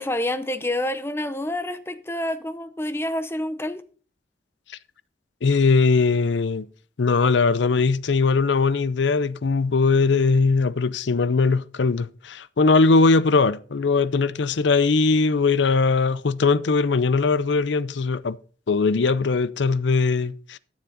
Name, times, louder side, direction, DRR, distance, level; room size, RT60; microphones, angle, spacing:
voice 1, 0.0-3.8, left 1 dB, 15° left, 0.6 m, -28 dB
voice 2, 5.4-6.7 7.0-18.4 18.7-20.6, left 4 dB, 75° left, 0.5 m, -20 dB
12.5 x 7.3 x 3.8 m
head